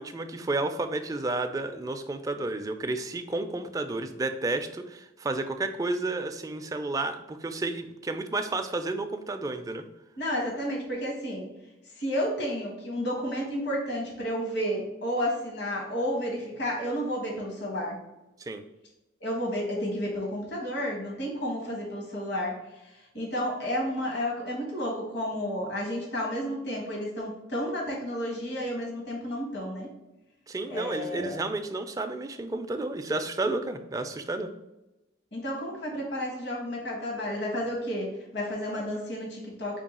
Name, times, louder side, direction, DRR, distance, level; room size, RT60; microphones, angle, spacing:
voice 1, 0.0-9.8 18.4-18.6 30.5-34.5, right 2 dB, 20° right, 7 dB, 0.3 m, -31 dB
voice 2, 10.2-11.5 12.0-18.0 19.2-22.6 23.1-29.9 30.7-31.4 35.3-38.1 38.3-39.8, equal, 65° left, -1 dB, 1.3 m, -31 dB
4.5 x 2.7 x 4.1 m, 0.97 s
head